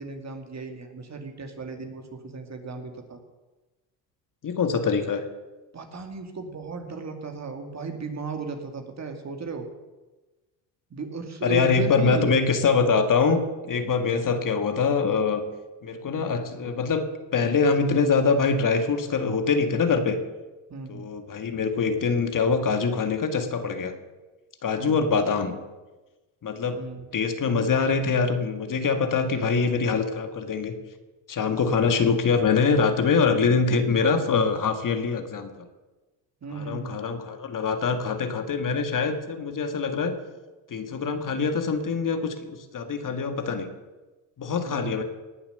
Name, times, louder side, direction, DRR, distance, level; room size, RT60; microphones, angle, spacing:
voice 1, 0.0-3.2 5.7-9.7 10.9-12.3 20.7-21.1 24.8-25.1 26.7-27.1 31.7-31.8 36.4-37.0 44.7-45.0, right 4 dB, 35° right, 5 dB, 2.4 m, -35 dB
voice 2, 4.4-5.2 11.4-15.4 15.8-17.0 17.3-20.2 20.9-23.9 24.6-25.5 26.4-26.8 27.1-30.7 31.3-35.7 36.5-40.2 40.7-43.7 44.4-45.0, left 5 dB, 40° left, 7 dB, 1.9 m, -24 dB
19.5 x 7.1 x 6.7 m, 1.2 s
hypercardioid pair, 70°, 48 cm